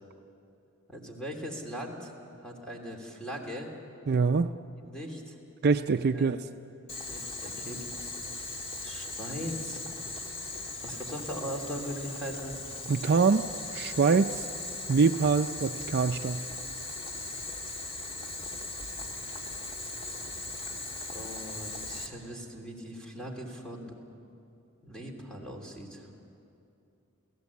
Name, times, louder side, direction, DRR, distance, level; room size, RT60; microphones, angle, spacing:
voice 1, 0.9-2.1 2.4-3.7 4.8-5.4 6.1-6.3 7.1-7.9 8.8-9.8 10.8-12.6 21.1-23.9 24.8-26.1, equal, 5° left, 0 dB, 3.0 m, -39 dB
voice 2, 4.1-4.5 5.6-6.4 12.9-13.5 13.7-14.5 14.9-16.4, right 5 dB, 50° right, 8 dB, 0.5 m, -24 dB
Boiling, 6.9-22.1, left 2 dB, 30° left, 1.8 m, -39 dB
28.5 x 17.0 x 8.4 m, 2.7 s
head